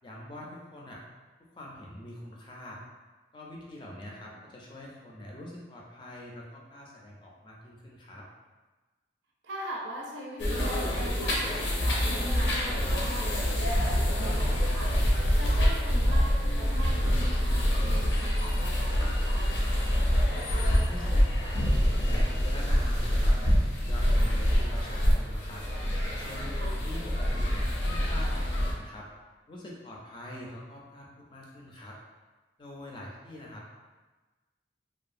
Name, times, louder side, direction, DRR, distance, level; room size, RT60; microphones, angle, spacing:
voice 1, 0.0-1.0 1.4-2.8 3.3-8.3 20.5-25.6 26.1-29.1 29.5-32.0 32.6-33.7, left 1 dB, 25° left, -3 dB, 0.4 m, -44 dB
voice 2, 3.9-4.4 9.4-15.0 15.4-19.6 26.6-26.8, right 1 dB, 85° right, -2 dB, 0.5 m, -41 dB
sound 1, 10.4-28.7, equal, 80° left, 0.5 m, -26 dB
2.7 x 2.3 x 2.4 m, 1.2 s
head